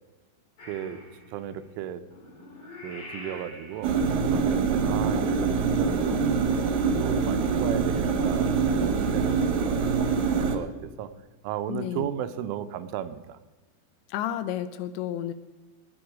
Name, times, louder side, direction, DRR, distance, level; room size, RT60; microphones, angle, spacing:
Purr / Meow, 0.6-10.5, left 1 dB, 40° left, 4.8 m, -45 dB
voice 1, 0.7-1.0 1.3-2.0 2.8-3.9 4.3-6.4 6.8-10.0 10.4-11.1 11.4-13.4, right 10 dB, 90° right, 10 dB, 3.2 m, -35 dB
sound 1, 3.8-10.6, right 5 dB, 65° right, 2.5 m, -24 dB
voice 2, 11.7-12.1 14.1-15.3, left 11 dB, 80° left, 12 dB, 2.8 m, -31 dB
19.5 x 8.9 x 5.0 m, 1.2 s
omnidirectional pair, 5.5 m